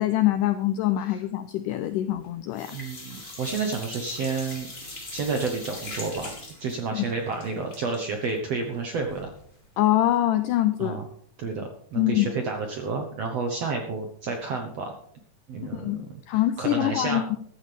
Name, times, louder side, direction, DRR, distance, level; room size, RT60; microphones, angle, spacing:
voice 1, 0.0-2.8 6.9-7.1 9.8-11.0 12.0-12.3 15.7-17.4, left 14 dB, 85° left, 10 dB, 1.8 m, -24 dB
sound 1, 1.8-2.3 2.5-9.4 9.7-9.8 10.1-10.2, left 2 dB, 15° left, 2.7 m, -41 dB
voice 2, 2.7-4.7 5.1-6.3 6.6-9.3 10.8-11.1 11.4-14.9 15.5-16.2 16.6-17.3, right 4 dB, 70° right, 4 dB, 1.6 m, -30 dB
14.5 x 13.0 x 3.4 m, 0.64 s
omnidirectional pair, 4.4 m